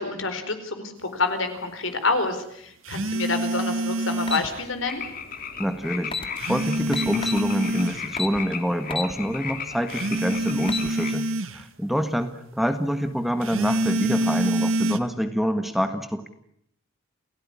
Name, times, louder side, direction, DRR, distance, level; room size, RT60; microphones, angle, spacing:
voice 1, 0.0-5.0, left 3 dB, 70° left, 8 dB, 4.5 m, -28 dB
sound 1, 2.9-4.6 6.4-8.1 9.9-11.6 13.4-15.0, right 1 dB, 80° right, 1.7 m, -26 dB
sound 2, 4.3-4.5 5.7-5.8 6.0-6.3 6.9-7.4 8.2-8.4 8.9-9.1 9.6-9.7 10.5-10.9, left 4 dB, 25° left, 1.7 m, -29 dB
sound 3, 4.9-11.1, left 6 dB, 45° left, 3.0 m, -36 dB
voice 2, 5.6-11.3 11.5-16.3, equal, ahead, 8 dB, 1.6 m, -26 dB
29.5 x 16.5 x 9.9 m, 0.74 s
head